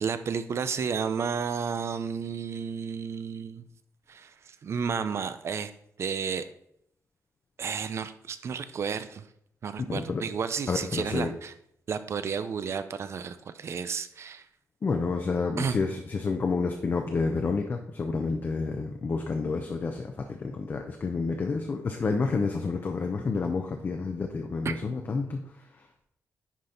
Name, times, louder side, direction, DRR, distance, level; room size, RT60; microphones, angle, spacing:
voice 1, 0.0-3.6 4.1-5.7 6.0-6.5 7.6-9.2 9.6-11.5 11.9-14.4 15.6-15.8 24.6-24.7, right 6 dB, 50° right, 11 dB, 0.5 m, -32 dB
voice 2, 9.9-10.2 10.7-11.3 14.8-25.9, left 4 dB, 35° left, 3 dB, 0.7 m, -29 dB
10.0 x 4.1 x 4.4 m, 0.71 s
wide cardioid pair, 145°, 6 cm